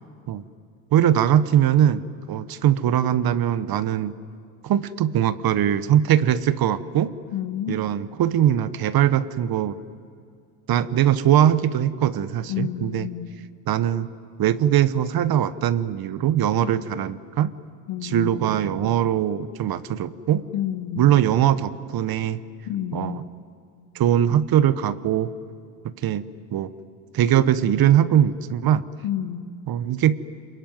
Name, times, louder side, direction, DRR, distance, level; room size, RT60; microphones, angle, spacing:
voice 1, 0.9-2.0 2.3-4.1 4.6-7.1 7.7-9.8 10.7-13.1 13.7-14.1 14.4-17.5 18.0-20.4 21.0-22.4 22.9-23.2 23.9-25.3 26.0-26.7 27.1-28.8 29.7-30.2, right 10 dB, 45° right, 15 dB, 1.1 m, -21 dB
voice 2, 7.3-7.8 12.5-13.3 16.6-16.7 17.9-18.3 20.5-21.1 22.7-23.2 29.0-29.4, left 11 dB, 60° left, 8 dB, 2.1 m, -29 dB
26.5 x 23.0 x 9.4 m, 2.3 s
supercardioid pair, 80°, 48 cm